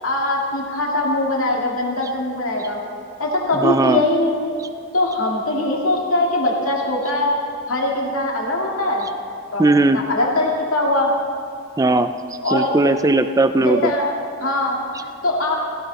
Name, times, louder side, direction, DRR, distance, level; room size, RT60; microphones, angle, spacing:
voice 1, 0.0-2.8 3.2-4.4 4.9-7.3 7.7-9.1 9.5-11.1 12.4-12.7 13.6-14.1 14.4-15.6, left 1 dB, 80° left, -2 dB, 2.4 m, -21 dB
voice 2, 3.5-4.0 9.6-10.0 11.8-12.1 12.5-13.9, right 2 dB, 15° right, 9 dB, 0.4 m, -17 dB
16.5 x 16.5 x 4.1 m, 2.3 s
head